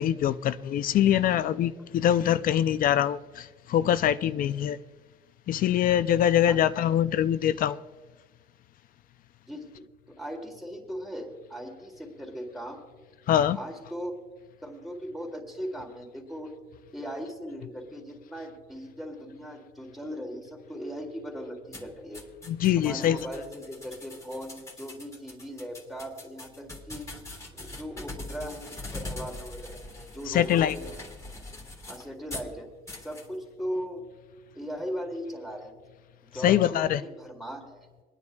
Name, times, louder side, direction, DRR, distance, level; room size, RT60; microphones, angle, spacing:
voice 1, 0.0-4.8 5.5-7.8 13.3-13.6 22.5-23.2 30.3-30.7 36.4-37.0, left 10 dB, 55° left, 0.5 m, -23 dB
voice 2, 9.5-12.8 13.5-14.2 14.6-16.5 16.9-22.2 22.8-27.1 27.5-30.9 31.9-32.7 33.0-34.1 34.6-35.7 36.3-37.9, equal, ahead, 2.4 m, -38 dB
sound 1, 21.7-32.5 32.9-33.3, left 2 dB, 15° left, 1.7 m, -42 dB
28.5 x 9.7 x 2.3 m
cardioid pair, 110°, 17 cm